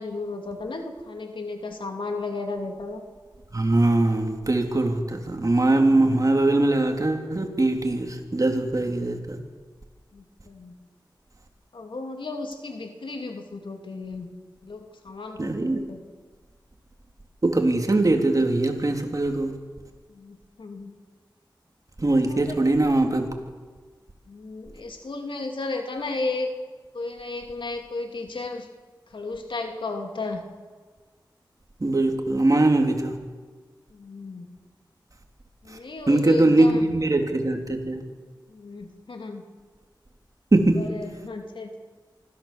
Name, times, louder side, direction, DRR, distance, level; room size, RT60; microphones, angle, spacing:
voice 1, 0.0-3.0 10.1-10.7 11.7-14.3 14.6-16.0 20.1-20.9 22.3-22.7 24.3-26.5 26.9-28.7 29.1-30.4 33.9-34.5 35.6-36.9 38.5-39.4 40.7-41.8, left 3 dB, 85° left, 4 dB, 2.6 m, -34 dB
voice 2, 3.5-9.4 15.4-15.8 17.4-19.5 22.0-23.3 31.8-33.2 35.7-35.8 36.1-38.0 40.5-40.9, right 2 dB, 45° right, 3 dB, 3.2 m, -21 dB
24.5 x 15.0 x 7.5 m, 1.4 s
cardioid pair, 45°, 8 cm